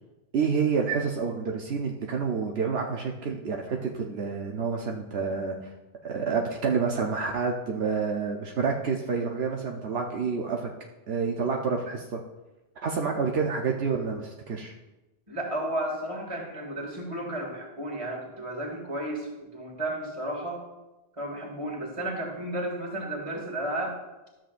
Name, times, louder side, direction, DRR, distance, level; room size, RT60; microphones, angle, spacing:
voice 1, 0.3-5.7 6.0-10.7 11.1-12.2 12.8-14.7, right 5 dB, 75° right, 0 dB, 1.0 m, -28 dB
voice 2, 15.3-20.6 21.2-24.0, right 1 dB, 30° right, -2 dB, 2.1 m, -33 dB
13.0 x 7.5 x 2.5 m, 1.1 s
omnidirectional pair, 1.1 m